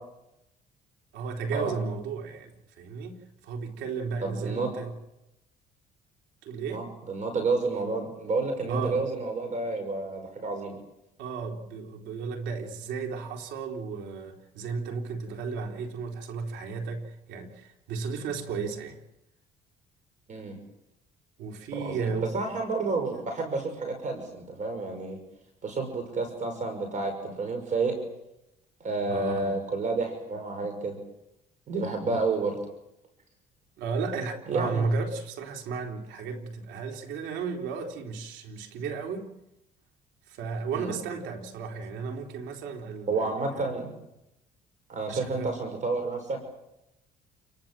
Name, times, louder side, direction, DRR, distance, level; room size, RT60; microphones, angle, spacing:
voice 1, 1.1-2.5 2.8-4.9 6.4-6.8 8.7-9.0 11.2-19.0 21.4-22.3 29.1-29.6 32.1-32.2 33.8-39.3 40.3-43.3 45.1-45.5, right 5 dB, 85° right, 3 dB, 3.9 m, -34 dB
voice 2, 4.2-4.7 6.7-10.8 20.3-20.6 21.8-25.2 25.6-28.0 28.8-31.0 31.7-32.6 34.5-34.8 40.8-40.9 43.1-43.9 44.9-46.4, right 3 dB, 50° right, 6 dB, 5.8 m, -30 dB
29.0 x 21.5 x 7.6 m, 0.89 s
cardioid pair, 110°, 17 cm